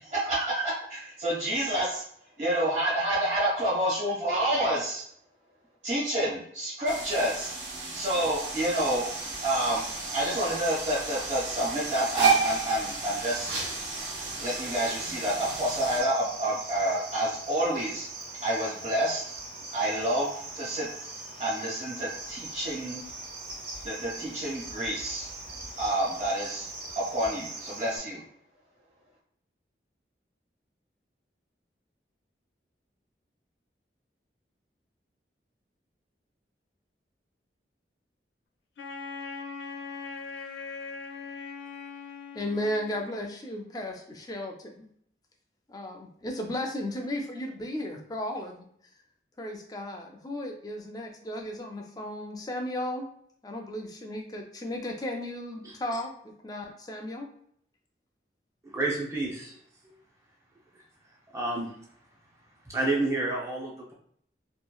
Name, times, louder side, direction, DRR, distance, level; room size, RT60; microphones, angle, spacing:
voice 1, 0.0-2.0 2.4-5.0 5.8-7.5 7.9-9.1 9.4-9.8 10.1-13.6 14.4-18.1 18.4-19.2 19.7-20.9 21.4-23.0 23.8-25.3 25.8-26.7 26.9-28.2, right 1 dB, 40° right, -6 dB, 1.4 m, -28 dB
sound 1, 6.9-16.0, right 4 dB, 75° right, 0.7 m, -32 dB
Cricket, 8.3-28.0, right 3 dB, 55° right, 1.3 m, -41 dB
Wind instrument woodwind instrument, 38.8-43.1, left 4 dB, 85° left, 0.5 m, -40 dB
voice 2, 42.3-44.8 45.7-48.6 49.4-53.0 53.4-57.3, left 1 dB, 20° left, 3 dB, 0.4 m, -35 dB
voice 3, 58.6-59.6 61.3-61.8 62.6-63.9, right 2 dB, 15° right, -3 dB, 0.6 m, -30 dB
2.9 x 2.4 x 2.3 m, 0.66 s
head